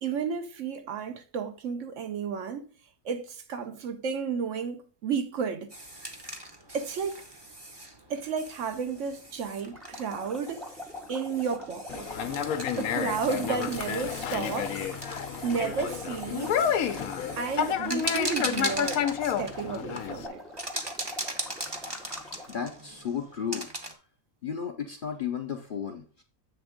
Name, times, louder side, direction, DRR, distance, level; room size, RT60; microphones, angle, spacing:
voice 1, 0.0-2.7 3.0-5.7 6.7-7.2 8.1-10.7 11.1-12.1 12.8-14.8 15.4-16.7 17.4-20.4, right 6 dB, 65° right, 0.9 m, -32 dB
sound 1, 5.7-23.9, right 1 dB, 20° right, 0.8 m, -40 dB
sound 2, 9.7-22.5, left 2 dB, ahead, 0.4 m, -43 dB
Conversation, 11.9-20.3, left 8 dB, 80° left, 1.1 m, -30 dB
voice 2, 22.5-23.7 24.4-26.2, left 7 dB, 50° left, 0.7 m, -34 dB
7.9 x 3.4 x 5.0 m
omnidirectional pair, 1.5 m